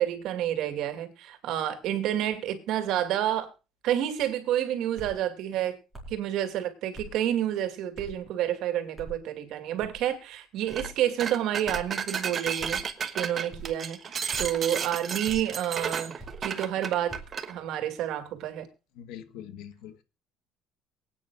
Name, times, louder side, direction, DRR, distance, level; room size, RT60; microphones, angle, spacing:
voice 1, 0.0-3.5 3.8-5.8 6.1-12.8 13.1-17.2 17.5-18.7, right 11 dB, 60° right, 2.4 m, -29 dB
sound 1, 5.0-5.2 5.9-6.2 6.9-7.2 7.9-8.2 9.0-9.2 9.8-10.1 10.7-11.0 11.6-11.9 12.6-12.9 13.5-13.8 14.3-14.6 15.2-15.5 16.2-16.5 17.1-17.4, right 2 dB, ahead, 4.4 m, -43 dB
sound 2, 10.7-10.9 11.2-17.5, right 7 dB, 30° right, 1.1 m, -33 dB
voice 2, 19.0-20.0, left 10 dB, 70° left, 1.4 m, -43 dB
23.5 x 9.1 x 2.5 m
cardioid pair, 165°, 0 cm